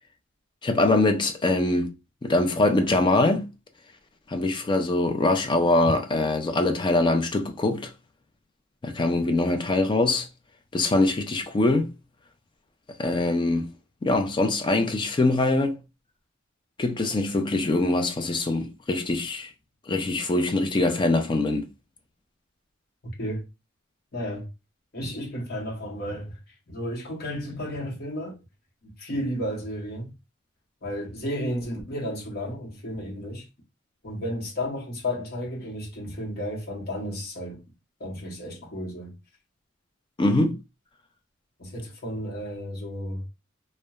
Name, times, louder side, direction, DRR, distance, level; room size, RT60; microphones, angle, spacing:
voice 1, 0.6-1.9 2.2-3.5 4.3-7.9 8.8-10.3 10.7-11.9 13.0-13.7 14.0-15.8 16.8-19.5 19.9-21.7 40.2-40.6, left 2 dB, 25° left, 0.4 m, -23 dB
voice 2, 24.1-24.5 24.9-26.4 26.7-28.4 28.8-30.1 30.8-33.5 34.0-37.6 38.0-39.1 41.6-43.2, equal, 50° left, 0.9 m, -33 dB
2.9 x 2.1 x 2.2 m
head